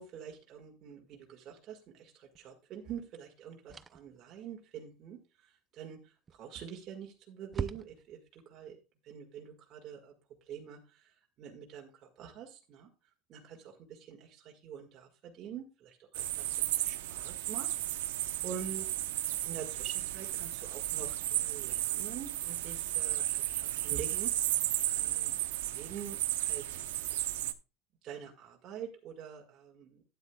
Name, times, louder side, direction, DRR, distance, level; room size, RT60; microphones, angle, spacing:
voice 1, 0.0-10.2 10.4-12.9 13.3-18.1 18.4-19.2 19.4-24.3 24.9-25.4 25.7-26.8 27.1-27.2 28.0-30.0, right 8 dB, 40° right, 0 dB, 1.9 m, -46 dB
sound 1, 2.3-2.5 3.7-4.2 6.3-6.7 7.0-7.1 7.5-8.3, right 5 dB, 20° right, 0.5 m, -40 dB
sound 2, 16.1-27.5, right 15 dB, 90° right, 0.8 m, -34 dB
12.0 x 9.7 x 2.3 m, 0.30 s
supercardioid pair, 145°, 0 cm